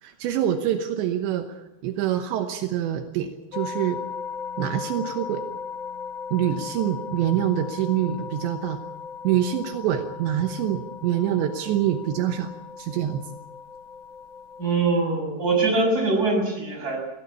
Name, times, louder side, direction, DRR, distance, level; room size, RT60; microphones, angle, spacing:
voice 1, 0.0-4.0 4.6-5.4 6.3-8.9 9.2-12.5 12.8-13.2, right 11 dB, 80° right, 6 dB, 3.3 m, -25 dB
sound 1, 3.5-14.7, left 6 dB, 90° left, 1.6 m, -37 dB
voice 2, 14.6-17.0, right 3 dB, 20° right, 1 dB, 6.5 m, -23 dB
21.5 x 16.5 x 8.6 m, 0.97 s
omnidirectional pair, 5.2 m